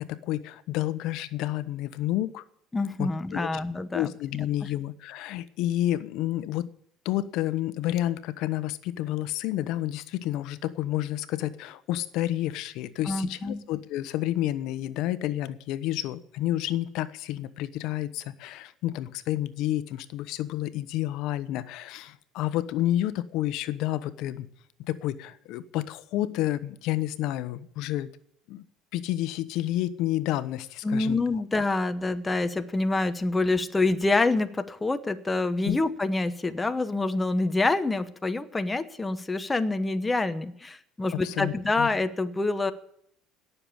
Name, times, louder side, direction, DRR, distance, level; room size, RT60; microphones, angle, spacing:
voice 1, 0.0-2.4 3.0-3.5 3.9-6.7 7.0-24.5 24.9-28.1 28.5-28.6 28.9-31.2 35.6-35.8 41.1-41.9, left 14 dB, 70° left, 14 dB, 1.0 m, -30 dB
voice 2, 2.7-4.1 13.1-13.6 30.8-42.7, left 3 dB, 15° left, 9 dB, 0.9 m, -26 dB
17.5 x 6.9 x 9.8 m, 0.69 s
cardioid pair, 130°, 0 cm